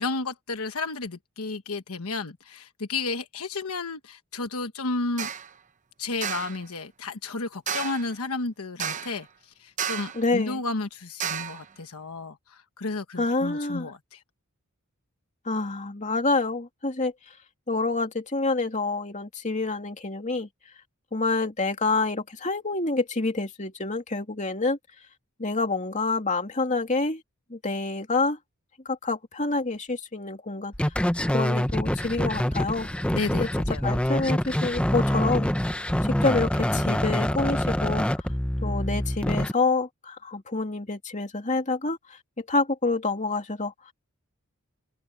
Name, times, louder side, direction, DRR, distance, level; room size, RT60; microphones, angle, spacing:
voice 1, 0.0-5.3 6.0-14.2 33.1-33.8, left 3 dB, 75° left, 1.2 m, -32 dB
sound 1, 5.2-5.5 6.2-6.6 7.7-8.1 8.8-9.2 9.8-10.2 11.2-11.6, right 8 dB, 35° right, 0.8 m, -32 dB
voice 2, 10.1-10.6 13.2-13.9 15.4-17.3 17.7-20.5 21.1-24.8 25.4-27.2 27.5-28.4 28.8-30.9 31.3-32.9 33.4-33.5 33.8-35.5 36.0-38.1 38.6-43.9, left 3 dB, 35° left, 2.7 m, -27 dB
sound 2, 30.7-39.5, equal, 5° left, 0.7 m, -26 dB
head